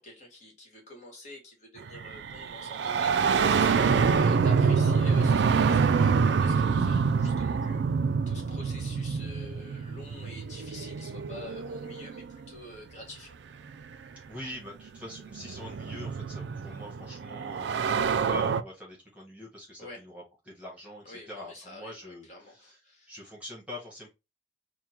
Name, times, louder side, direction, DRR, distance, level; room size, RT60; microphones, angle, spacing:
voice 1, 0.0-3.2 3.5-7.8 8.3-13.4 19.8-20.0 21.0-23.1, left 1 dB, 40° left, 1.6 m, -47 dB
sound 1, 1.9-12.5 13.7-13.8 14.9-18.6, right 5 dB, 75° right, 0.3 m, -26 dB
voice 2, 14.3-22.8 23.1-24.1, left 1 dB, 10° right, 1.3 m, -44 dB
3.6 x 2.2 x 4.3 m
head